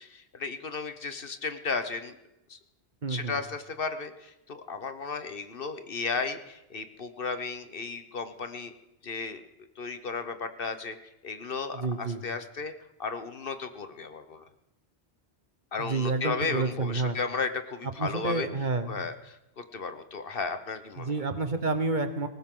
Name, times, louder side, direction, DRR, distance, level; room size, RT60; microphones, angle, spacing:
voice 1, 0.0-2.2 2.5-2.6 3.1-8.7 9.0-9.4 9.8-11.0 11.2-12.7 13.0-14.5 15.7-18.5 18.9-21.2, left 4 dB, 55° left, 9 dB, 1.2 m, -34 dB
voice 2, 3.0-3.4 11.7-12.2 15.8-17.2 18.0-19.0 21.0-22.3, right 3 dB, 45° right, 8 dB, 1.2 m, -29 dB
20.0 x 19.0 x 3.8 m, 0.92 s
omnidirectional pair, 1.1 m